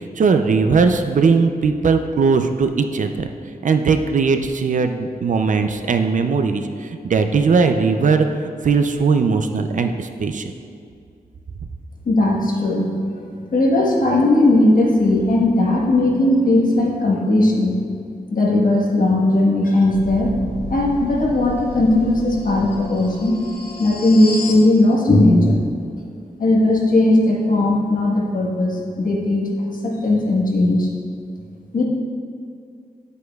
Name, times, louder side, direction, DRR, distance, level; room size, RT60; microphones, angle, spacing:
voice 1, 0.2-3.3 3.6-8.3 8.6-10.5, right 5 dB, 55° right, 7 dB, 0.4 m, -18 dB
voice 2, 12.0-12.9 13.2-17.8 18.3-20.3 20.7-23.4 23.8-25.6 25.9-26.0 26.4-29.5 29.8-30.9 31.7-31.8, left 2 dB, 60° left, -2 dB, 1.3 m, -17 dB
sound 1, 19.8-24.7, left 2 dB, 85° left, 1.0 m, -33 dB
9.9 x 8.1 x 2.3 m, 2.3 s
wide cardioid pair, 160°, 16 cm